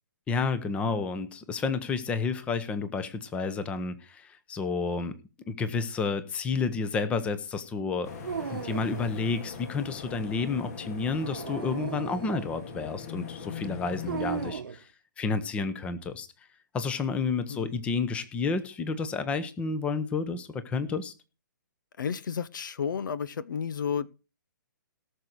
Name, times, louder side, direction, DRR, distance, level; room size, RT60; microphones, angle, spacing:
voice 1, 0.3-5.1 5.5-8.1 8.5-14.9 15.2-16.3 16.7-21.1, left 4 dB, 10° left, 0.9 m, -30 dB
sound 1, 8.0-14.5, left 6 dB, 45° left, 2.1 m, -40 dB
Dog, 8.2-9.2 11.1-12.6 14.1-14.8, right 6 dB, 80° right, 1.1 m, -36 dB
voice 2, 17.5-17.8 22.0-24.1, left 7 dB, 70° left, 0.7 m, -32 dB
18.0 x 6.6 x 4.6 m
hypercardioid pair, 155°, 11 cm